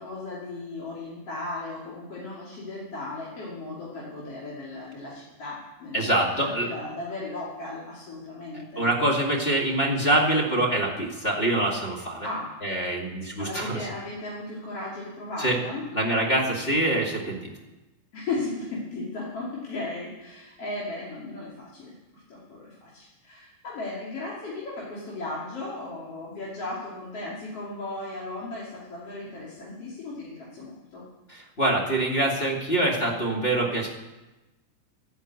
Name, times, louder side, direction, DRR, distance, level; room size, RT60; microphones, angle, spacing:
voice 1, 0.0-8.9 12.2-12.5 13.4-15.8 16.5-16.6 18.1-31.0, left 2 dB, 50° left, -6 dB, 3.8 m, -36 dB
voice 2, 5.9-6.7 8.5-12.3 12.6-13.8 15.4-15.6 15.9-17.5 31.3-33.9, right 1 dB, 20° left, -1 dB, 2.1 m, -25 dB
13.0 x 10.5 x 8.3 m, 1.1 s
omnidirectional pair, 3.6 m